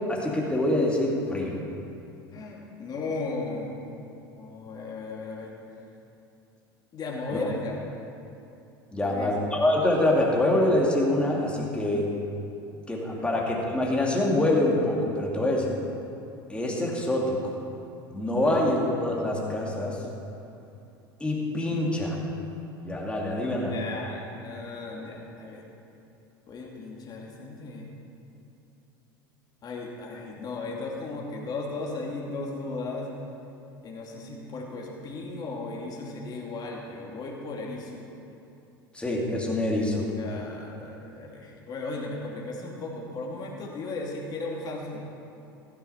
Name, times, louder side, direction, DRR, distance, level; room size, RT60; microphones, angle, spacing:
voice 1, 0.1-1.6 7.3-7.4 8.9-12.1 12.9-15.8 16.5-17.4 18.1-20.0 21.2-22.2 22.8-23.7 38.9-40.1, left 1 dB, 10° left, -2 dB, 2.5 m, -25 dB
voice 2, 2.3-3.9 4.4-5.5 6.9-7.8 9.0-9.3 13.1-13.3 18.4-18.5 23.7-25.7 26.5-27.9 29.6-33.1 33.8-38.1 40.2-45.1, left 3 dB, 35° left, -2 dB, 2.3 m, -36 dB
15.5 x 9.8 x 4.3 m, 2.7 s
figure-of-eight pair, 75°, 12 cm